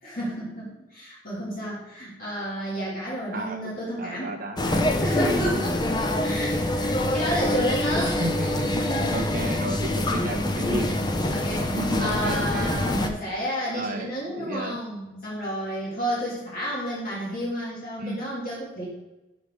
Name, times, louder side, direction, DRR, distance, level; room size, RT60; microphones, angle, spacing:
voice 1, 0.0-4.4 4.9-5.8 6.2-8.3 8.7-9.2 11.3-18.9, equal, 50° left, -6 dB, 3.0 m, -31 dB
voice 2, 4.0-4.9 8.2-10.9 11.7-12.7 13.7-14.8 18.0-18.3, right 2 dB, 45° right, 5 dB, 1.0 m, -33 dB
sound 1, 4.6-13.1, left 1 dB, 20° left, 0.7 m, -25 dB
6.7 x 5.1 x 6.4 m, 0.99 s
head